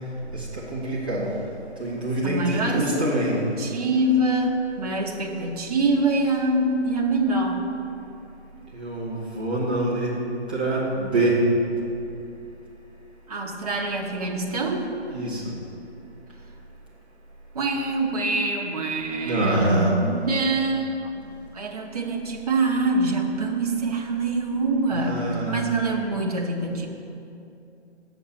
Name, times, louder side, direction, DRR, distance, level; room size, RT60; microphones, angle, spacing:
voice 1, 0.3-1.3 1.8-3.4 8.7-10.2 10.5-11.4 15.1-15.5 19.2-19.9 24.9-25.6, right 1 dB, 10° right, -8 dB, 0.6 m, -25 dB
voice 2, 2.2-2.9 3.6-7.6 13.3-14.9 17.5-21.1 21.5-26.9, right 2 dB, 35° right, -1 dB, 0.9 m, -25 dB
7.0 x 7.0 x 7.8 m, 2.7 s
figure-of-eight pair, 155°, 35 cm